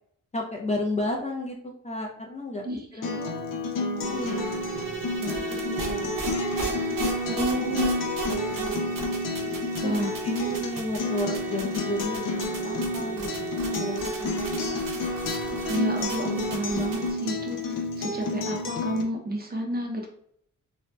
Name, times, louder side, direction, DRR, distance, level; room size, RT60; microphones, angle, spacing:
voice 1, 0.3-1.5 1.8-3.2 3.8-4.5 5.2-6.2 7.5-7.8 8.4-8.8 9.8-14.8, left 2 dB, 20° left, -1 dB, 0.4 m, -33 dB
Acoustic guitar, 3.0-19.0, left 3 dB, 80° left, 0.5 m, -30 dB
sound 1, 4.0-17.1, right 6 dB, 85° right, 0.8 m, -34 dB
voice 2, 7.3-8.1 9.8-10.1 15.7-20.1, right 1 dB, 30° right, 1 dB, 0.5 m, -31 dB
2.5 x 2.0 x 3.3 m, 0.65 s
wide cardioid pair, 115°, 32 cm